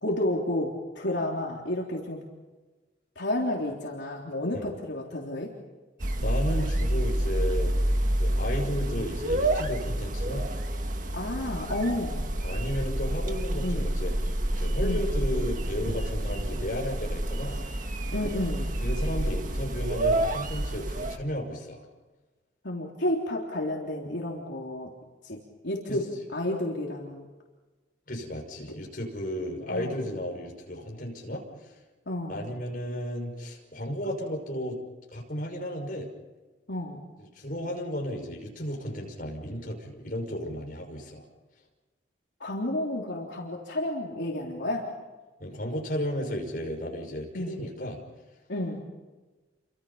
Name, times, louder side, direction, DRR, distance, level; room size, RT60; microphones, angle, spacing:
voice 1, 0.0-2.2 3.2-5.5 11.1-12.3 13.6-13.9 14.8-15.1 18.1-18.7 22.6-24.9 25.2-25.4 25.6-26.1 26.3-27.3 28.6-28.7 29.7-30.0 32.1-32.5 36.7-37.0 42.4-44.9 47.3-47.6 48.5-48.8, left 1 dB, 65° left, -2 dB, 3.5 m, -31 dB
sound 1, 6.0-21.2, right 1 dB, 45° right, 1.7 m, -28 dB
voice 2, 6.2-7.8 8.2-10.5 12.4-14.1 14.6-17.6 18.8-21.9 25.9-26.0 28.1-31.4 32.3-34.8 35.1-36.1 37.3-41.2 45.4-48.0, equal, 45° left, 1 dB, 5.7 m, -34 dB
29.5 x 25.5 x 5.7 m, 1.2 s
head